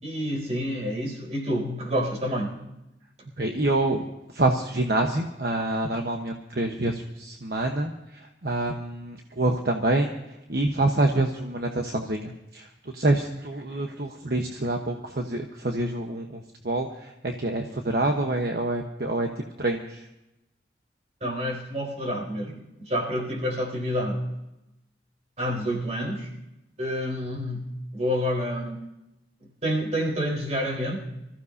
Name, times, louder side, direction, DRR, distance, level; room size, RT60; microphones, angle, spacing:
voice 1, 0.0-2.6 21.2-24.3 25.4-26.3 26.8-28.8 29.6-31.0, equal, 35° right, -1 dB, 4.4 m, -28 dB
voice 2, 3.4-4.0 4.3-7.9 8.4-10.1 10.5-12.6 12.9-16.4 16.6-16.9 17.2-19.3 19.6-19.8, right 2 dB, 60° right, 3 dB, 1.1 m, -26 dB
25.5 x 15.0 x 2.8 m, 0.93 s
head